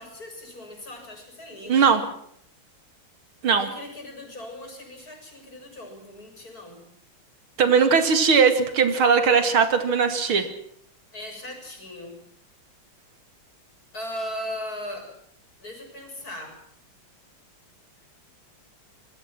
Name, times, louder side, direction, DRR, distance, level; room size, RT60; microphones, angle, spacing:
voice 1, 0.0-2.0 3.6-6.8 11.1-12.2 13.9-15.1 15.6-16.6, left 1 dB, 45° left, 4 dB, 7.2 m, -38 dB
voice 2, 1.7-2.0 3.4-3.7 7.6-10.5, right 6 dB, 90° right, 9 dB, 3.1 m, -19 dB
27.0 x 21.0 x 6.1 m, 0.68 s
omnidirectional pair, 2.2 m